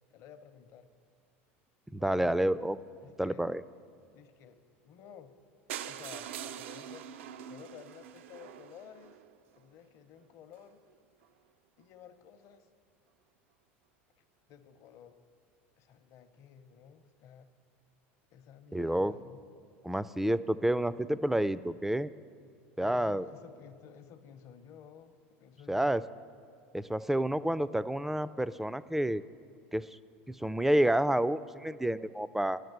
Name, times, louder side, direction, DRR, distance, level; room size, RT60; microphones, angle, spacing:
voice 1, 0.1-0.9 2.0-2.5 3.0-3.5 4.1-4.6 4.8-5.3 5.8-7.1 7.5-9.2 9.5-10.8 11.8-12.7 14.5-15.2 15.8-17.5 18.3-19.4 22.8-26.0, left 8 dB, 55° left, 9 dB, 0.7 m, -53 dB
voice 2, 1.9-2.8 3.2-3.6 18.7-19.2 19.8-22.1 22.8-23.2 25.7-26.0 26.7-29.2 29.7-30.0 30.3-32.6, right 1 dB, 5° right, 16 dB, 0.3 m, -29 dB
sound 1, 5.7-9.6 10.2-10.3 10.6-10.7 10.9-11.0 11.2-11.3, right 9 dB, 80° right, 0.4 m, -44 dB
10.5 x 6.6 x 8.0 m, 2.2 s
hypercardioid pair, 90°, 7 cm